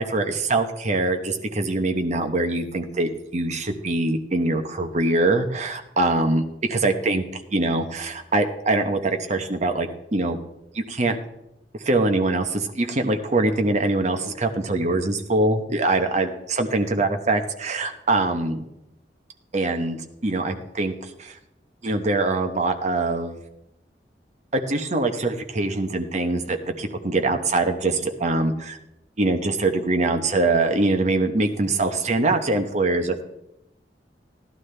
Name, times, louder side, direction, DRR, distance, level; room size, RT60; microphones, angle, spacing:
voice 1, 0.0-6.4 6.7-10.4 10.7-11.2 11.8-18.7 19.5-21.4 21.8-23.4 24.5-28.8 29.2-33.2, right 2 dB, 40° right, 6 dB, 0.9 m, -23 dB
16.0 x 11.5 x 3.3 m, 0.88 s
head